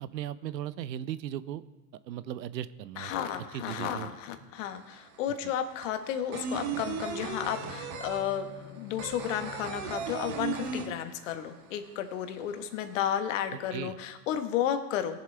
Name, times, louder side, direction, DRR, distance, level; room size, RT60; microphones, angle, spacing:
voice 1, 0.0-1.6 2.1-3.1 3.5-4.1 5.4-5.5 13.5-14.0, right 11 dB, 80° right, 16 dB, 0.7 m, -37 dB
voice 2, 3.0-15.2, left 9 dB, 50° left, 8 dB, 1.2 m, -33 dB
sound 1, 4.6-4.7 4.9-11.5 11.8-11.9 12.2-13.0, right 6 dB, 40° right, 1.4 m, -36 dB
Bowed string instrument, 7.0-11.1, left 8 dB, 85° left, 1.4 m, -50 dB
20.5 x 7.3 x 3.3 m, 1.2 s
hypercardioid pair, 135°, 49 cm